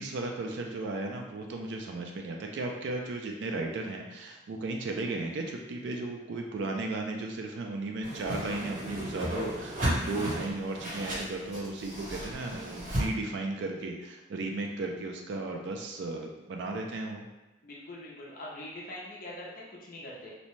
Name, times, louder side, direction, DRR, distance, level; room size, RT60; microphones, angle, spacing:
voice 1, 0.0-17.3, right 2 dB, 60° right, 2 dB, 0.3 m, -35 dB
Whoosh swoosh swish, 8.0-13.0, equal, 45° right, 1.0 m, -34 dB
voice 2, 17.6-20.3, left 1 dB, 45° left, -4 dB, 0.5 m, -43 dB
2.7 x 2.1 x 3.0 m, 1.1 s
head